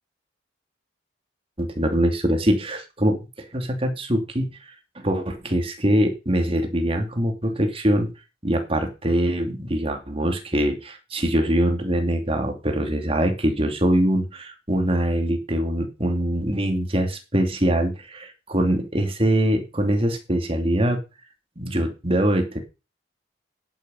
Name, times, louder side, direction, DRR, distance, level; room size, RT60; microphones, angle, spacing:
voice 1, 1.6-4.5 5.0-8.1 8.4-21.0 21.6-22.6, right 1 dB, 30° right, 5 dB, 2.6 m, -23 dB
10.5 x 9.3 x 5.6 m, 0.29 s
head